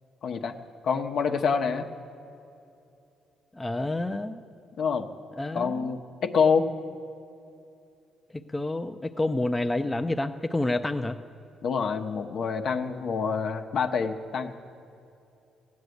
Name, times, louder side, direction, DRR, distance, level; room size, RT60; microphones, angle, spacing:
voice 1, 0.2-0.6 0.8-1.9 4.8-5.1 5.5-6.7 11.6-14.5, left 5 dB, 65° left, 5 dB, 0.9 m, -26 dB
voice 2, 3.5-4.4 5.4-6.0 8.5-11.2, left 2 dB, 15° left, 6 dB, 0.5 m, -29 dB
16.0 x 9.5 x 7.9 m, 2.7 s
cardioid pair, 90°, 0 cm